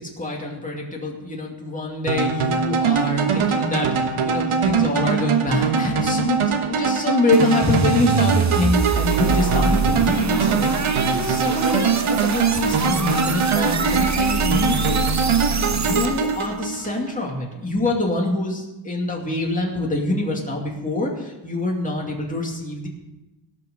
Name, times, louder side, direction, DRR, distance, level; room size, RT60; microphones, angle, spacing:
voice 1, 0.0-15.3 15.5-22.9, left 2 dB, 15° left, -2 dB, 2.5 m, -25 dB
sound 1, 2.1-17.1, right 5 dB, 85° right, 1.3 m, -22 dB
sound 2, 7.3-16.4, right 5 dB, 35° right, 0.8 m, -25 dB
sound 3, 13.8-16.9, right 3 dB, 65° right, 1.3 m, -34 dB
17.0 x 6.1 x 7.1 m, 1.0 s
wide cardioid pair, 120°, 49 cm